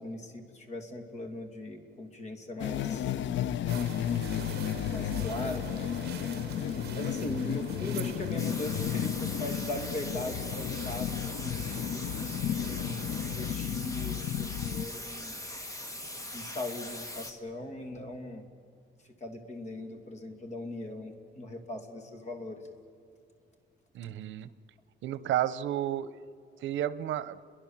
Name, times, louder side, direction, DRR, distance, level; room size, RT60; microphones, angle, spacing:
voice 1, 0.0-3.1 4.1-4.4 4.9-5.9 6.5-15.4 16.3-18.4 19.2-22.6, left 1 dB, 35° left, 5 dB, 2.7 m, -40 dB
sound 1, 2.6-14.9, left 10 dB, 80° left, 0.7 m, -33 dB
sound 2, 3.7-13.6, right 9 dB, 60° right, 1.1 m, -46 dB
sound 3, 8.4-17.3, left 1 dB, 15° left, 1.7 m, -41 dB
voice 2, 23.9-24.5 25.0-26.2 26.6-27.4, right 12 dB, 85° right, 15 dB, 0.8 m, -31 dB
30.0 x 22.5 x 7.4 m, 2.5 s
cardioid pair, 155°, 19 cm